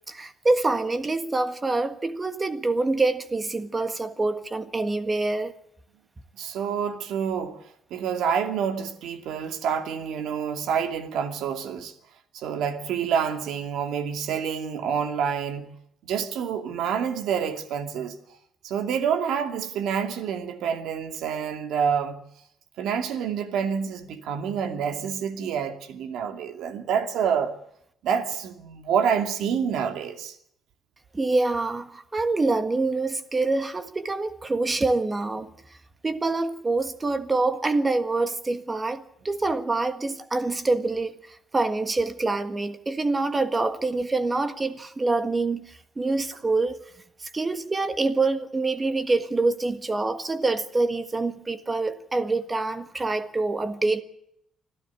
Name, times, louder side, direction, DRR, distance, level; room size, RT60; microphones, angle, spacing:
voice 1, 0.1-5.5 31.1-35.5 36.0-41.1 41.5-46.8 47.2-54.0, right 3 dB, 20° right, 1.6 m, -26 dB
voice 2, 6.3-7.6 7.9-11.9 12.3-15.7 16.0-18.2 18.6-22.2 22.8-27.6 28.0-30.4, right 7 dB, 85° right, 2.5 m, -27 dB
25.5 x 14.0 x 8.5 m
cardioid pair, 155°, 0 cm